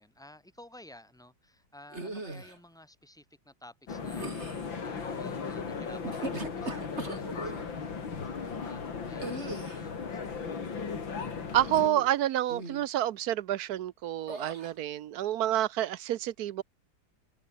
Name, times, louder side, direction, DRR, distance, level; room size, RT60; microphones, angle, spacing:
voice 1, 0.0-10.4, left 1 dB, ahead, 6.0 m, -54 dB
sound 1, 1.9-2.6 4.0-4.7 5.9-7.7 9.2-9.9 11.7-12.2 12.5-12.9 14.3-14.7, right 2 dB, 35° right, 4.5 m, -39 dB
sound 2, 3.9-11.9, left 5 dB, 85° left, 3.5 m, -37 dB
voice 2, 11.5-16.6, right 12 dB, 65° right, 1.1 m, -29 dB
open air
omnidirectional pair, 2.0 m